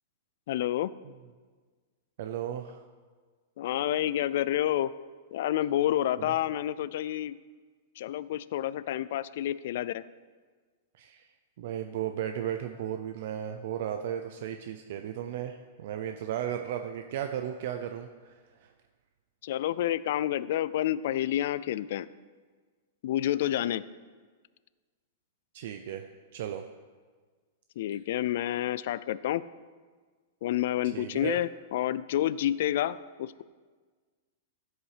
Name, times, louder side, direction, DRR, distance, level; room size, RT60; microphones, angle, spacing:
voice 1, 0.5-0.9 3.6-4.9 5.3-7.4 8.0-10.0 19.4-22.1 23.0-23.8 27.8-29.4 30.4-33.4, left 12 dB, 50° left, 17 dB, 0.3 m, -29 dB
voice 2, 2.2-2.8 6.2-6.3 11.0-11.3 11.6-18.7 25.5-26.0 26.3-26.6 30.9-31.4, right 10 dB, 50° right, 6 dB, 0.6 m, -35 dB
14.0 x 8.0 x 5.0 m, 1.5 s
supercardioid pair, 175°, 0 cm